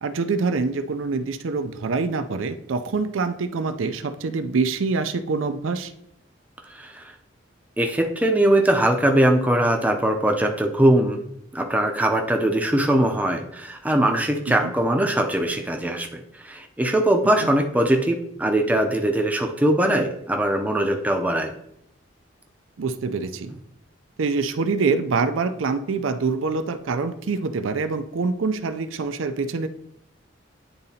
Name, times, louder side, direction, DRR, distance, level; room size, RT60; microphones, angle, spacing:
voice 1, 0.0-5.9 14.5-14.7 17.4-17.5 22.8-23.5 24.2-29.7, right 4 dB, 90° right, 9 dB, 0.5 m, -25 dB
voice 2, 6.7-7.1 7.8-11.2 11.5-21.5, right 1 dB, 10° right, 3 dB, 0.6 m, -21 dB
10.0 x 3.8 x 2.8 m, 0.75 s
head